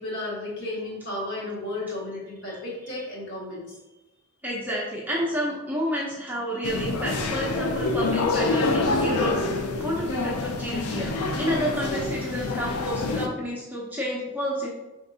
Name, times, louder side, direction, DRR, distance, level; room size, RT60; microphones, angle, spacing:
voice 1, 0.0-3.7, left 2 dB, 55° left, -5 dB, 1.5 m, -33 dB
voice 2, 4.4-9.4 9.8-14.7, equal, 10° right, -4 dB, 0.6 m, -30 dB
sound 1, 6.6-13.3, left 3 dB, 90° left, 0.5 m, -27 dB
5.1 x 3.6 x 2.7 m, 1.0 s
head